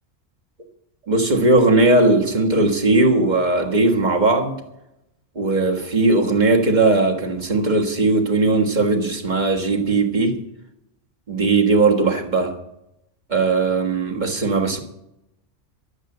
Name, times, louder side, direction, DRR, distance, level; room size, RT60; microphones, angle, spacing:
voice 1, 1.1-4.6 5.3-10.4 11.3-12.5 13.3-14.8, right 2 dB, 35° right, 1.7 m, -18 dB
12.0 x 8.3 x 7.7 m
omnidirectional pair, 1.3 m